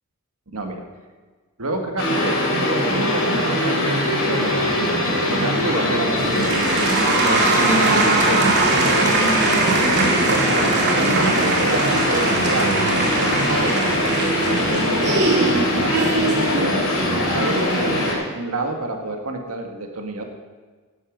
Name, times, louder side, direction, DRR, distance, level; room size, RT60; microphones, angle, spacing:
voice 1, 0.5-0.8 1.6-4.7 5.3-9.5 10.2-18.1 18.3-20.2, right 2 dB, 90° right, 3 dB, 1.9 m, -29 dB
sound 1, 2.0-18.1, left 1 dB, 65° left, 3.8 m, -21 dB
sound 2, 6.1-18.1, right 3 dB, 50° right, 2.1 m, -22 dB
11.0 x 11.0 x 5.3 m, 1.4 s
head